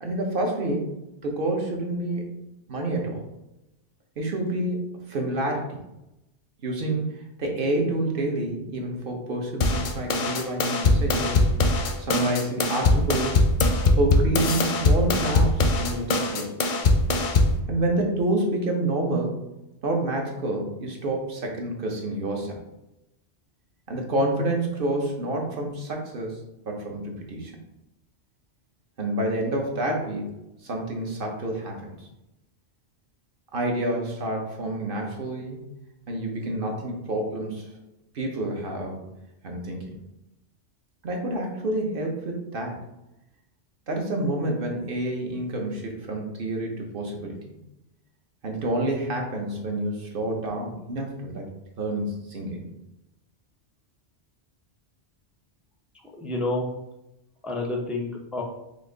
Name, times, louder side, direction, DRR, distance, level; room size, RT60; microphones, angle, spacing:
voice 1, 0.0-1.0 1.2-2.3 2.7-3.2 4.2-5.8 6.6-7.0 7.4-11.5 12.0-13.4 14.0-16.5 17.7-19.4 19.8-22.6 23.9-26.4 26.7-27.5 29.0-30.4 30.6-31.9 33.5-35.6 36.1-37.7 38.1-39.0 39.4-39.9 41.0-42.8 43.9-47.4 48.4-51.4 51.8-52.6, right 1 dB, 55° right, 1 dB, 1.0 m, -28 dB
sound 1, 9.6-17.6, left 2 dB, 55° left, 0.6 m, -22 dB
voice 2, 56.1-56.7 57.4-58.4, left 2 dB, ahead, 0 dB, 0.4 m, -29 dB
5.1 x 2.5 x 3.8 m, 0.90 s
omnidirectional pair, 1.2 m